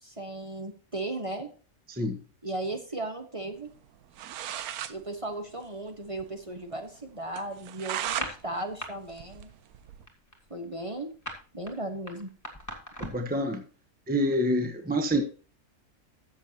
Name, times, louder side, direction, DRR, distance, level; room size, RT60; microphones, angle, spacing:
voice 1, 0.0-1.5 2.4-3.7 4.9-9.5 10.5-11.1 11.5-12.3, right 2 dB, 25° right, 4 dB, 1.3 m, -36 dB
voice 2, 1.9-2.2 13.0-13.6 14.1-15.2, equal, 5° right, 6 dB, 1.0 m, -27 dB
sound 1, 3.9-4.0 4.1-5.0 5.3-5.4 5.6-5.7 6.1-6.2 6.6-6.7 7.4-8.3 8.7-10.0, right 11 dB, 85° right, 1.2 m, -35 dB
sound 2, 8.1-8.9 9.2-9.5 9.8-13.3, equal, 10° left, 2.0 m, -39 dB
13.5 x 7.4 x 3.0 m, 0.37 s
omnidirectional pair, 1.5 m